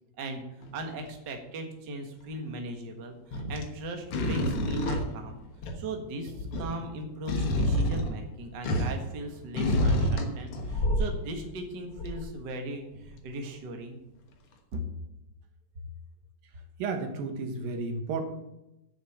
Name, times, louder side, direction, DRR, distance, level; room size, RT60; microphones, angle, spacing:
voice 1, 0.2-5.4 5.7-14.0 14.7-14.8, right 1 dB, 50° right, 4 dB, 1.3 m, -38 dB
sound 1, 0.6-1.1 3.3-3.7 4.1-5.9 6.3-9.1 9.5-11.2 12.0-12.2 12.9-13.0, left 1 dB, 60° left, 1.5 m, -28 dB
voice 2, 16.4-18.2, right 4 dB, 75° right, 6 dB, 3.0 m, -33 dB
8.8 x 6.6 x 8.5 m, 0.90 s
omnidirectional pair, 4.3 m